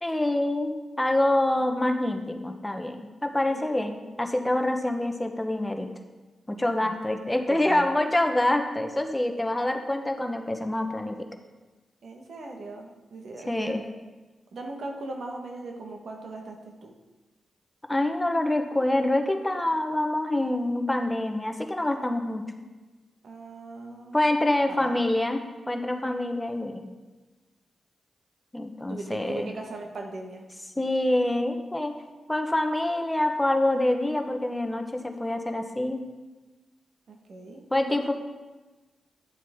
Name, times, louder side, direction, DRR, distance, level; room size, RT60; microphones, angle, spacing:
voice 1, 0.0-5.9 6.5-11.3 13.5-13.8 17.9-22.4 24.1-25.4 25.7-26.8 28.5-29.5 30.8-32.0 32.3-36.0 37.7-38.1, left 1 dB, 15° left, 5 dB, 1.0 m, -26 dB
voice 2, 7.5-7.8 12.0-13.8 14.5-16.9 23.2-24.4 24.7-25.1 28.9-30.4 37.1-37.6, right 2 dB, 75° right, 2 dB, 1.3 m, -39 dB
10.5 x 7.2 x 3.6 m, 1.2 s
cardioid pair, 55°, 0 cm